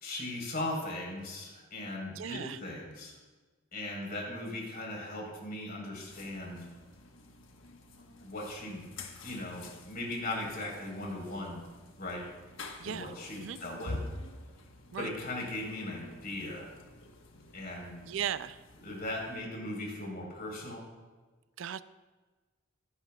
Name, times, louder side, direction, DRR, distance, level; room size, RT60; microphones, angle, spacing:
voice 1, 0.0-3.1 3.7-6.7 8.2-8.8 9.2-11.6 12.0-12.3 12.8-14.0 15.0-16.7 17.5-17.9 18.8-20.8, left 1 dB, 45° left, -1 dB, 4.1 m, -38 dB
voice 2, 2.1-2.6 12.8-13.6 14.9-15.1 18.0-18.6 21.6-21.8, right 9 dB, 70° right, 15 dB, 0.4 m, -37 dB
sound 1, 6.1-19.4, left 2 dB, 75° left, 1.3 m, -48 dB
22.5 x 11.5 x 2.4 m, 1.3 s
head